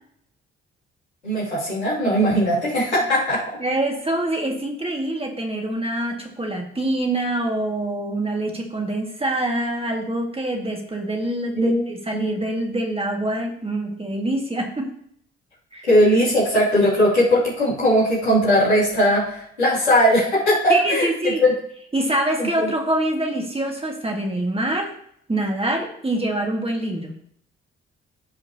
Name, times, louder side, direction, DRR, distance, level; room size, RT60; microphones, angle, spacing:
voice 1, 1.2-3.4 11.5-11.8 12.1-12.2 15.9-21.5 22.4-22.7, equal, 85° left, -10 dB, 2.8 m, -19 dB
voice 2, 3.6-14.9 15.7-15.9 20.7-21.4 21.9-24.9 25.3-27.2, right 1 dB, 15° right, 1 dB, 2.0 m, -25 dB
15.0 x 5.2 x 2.9 m, 0.68 s
figure-of-eight pair, 40°, 33 cm